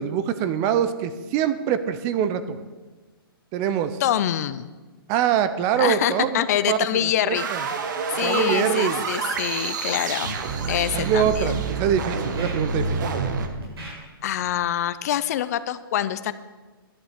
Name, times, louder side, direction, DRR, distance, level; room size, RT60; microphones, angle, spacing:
voice 1, 0.0-2.6 3.5-4.0 5.1-6.8 7.2-7.6 8.2-9.0 10.9-13.1, right 9 dB, 25° right, 12 dB, 0.6 m, -24 dB
voice 2, 4.0-4.7 5.8-7.5 8.1-10.4 10.7-11.6 14.2-16.3, left 11 dB, 40° left, 15 dB, 0.5 m, -25 dB
sound 1, 7.3-13.5, right 5 dB, 50° right, 1.4 m, -28 dB
Scratching (performance technique), 9.3-10.0 10.2-10.4 10.9-11.1 11.6-11.8 12.2-13.3 13.6-13.9 14.4-14.6, right 2 dB, 90° right, 5.2 m, -38 dB
11.5 x 7.2 x 8.1 m, 1.3 s
hypercardioid pair, 155°, 12 cm